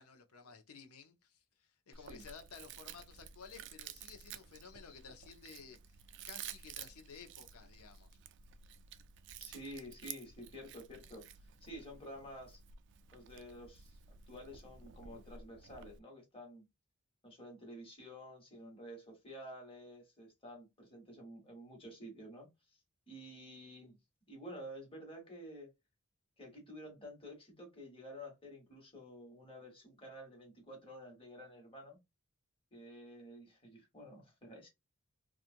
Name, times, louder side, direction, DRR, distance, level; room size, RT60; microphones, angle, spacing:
voice 1, 0.0-6.0 6.2-8.1, left 6 dB, 85° left, 0.7 m, -54 dB
Chewing mastication, 1.9-16.0, right 8 dB, 55° right, 0.3 m, -52 dB
voice 2, 9.4-11.3 11.6-12.6 13.1-14.0 14.3-16.7 17.2-22.5 23.1-24.0 24.3-25.7 26.4-32.0 32.7-34.7, equal, 25° left, 1.4 m, -51 dB
2.9 x 2.4 x 2.5 m
head